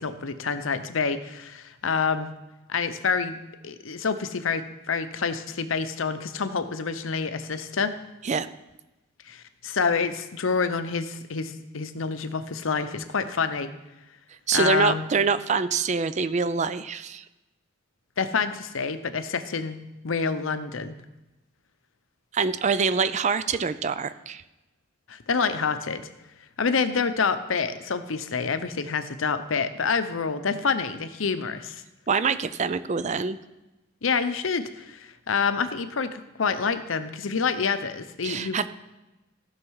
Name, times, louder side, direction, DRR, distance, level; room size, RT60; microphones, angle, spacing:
voice 1, 0.0-2.3 2.7-3.4 3.6-7.9 9.3-13.7 14.5-15.0 18.2-19.8 20.0-21.0 25.1-26.0 26.6-31.8 34.0-38.7, left 5 dB, 85° left, 11 dB, 0.7 m, -27 dB
voice 2, 14.5-17.2 22.3-24.4 32.1-33.4 38.2-38.7, right 5 dB, 35° right, 14 dB, 0.4 m, -25 dB
15.5 x 6.5 x 4.7 m, 1.0 s
head